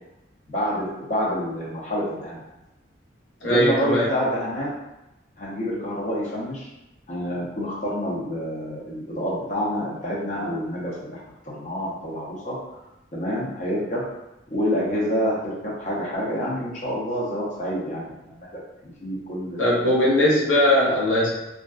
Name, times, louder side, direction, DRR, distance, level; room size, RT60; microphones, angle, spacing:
voice 1, 0.5-2.4 3.4-4.7 5.4-6.7 7.1-11.2 11.4-12.6 13.1-14.0 14.5-18.5 18.8-19.6, equal, 40° left, -5 dB, 0.6 m, -27 dB
voice 2, 3.4-4.1 19.6-21.3, left 1 dB, 85° left, -6 dB, 0.7 m, -19 dB
2.5 x 2.2 x 2.3 m, 0.95 s
head